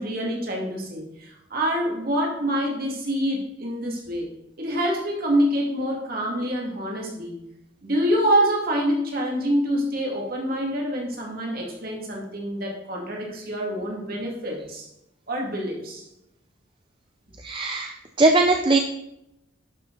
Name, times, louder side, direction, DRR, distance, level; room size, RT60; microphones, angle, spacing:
voice 1, 0.0-4.3 4.6-7.4 7.8-14.9 15.3-16.0, equal, 45° right, -1 dB, 2.6 m, -26 dB
voice 2, 17.4-18.8, right 2 dB, 25° right, 4 dB, 0.5 m, -20 dB
11.5 x 6.9 x 4.0 m, 0.85 s
head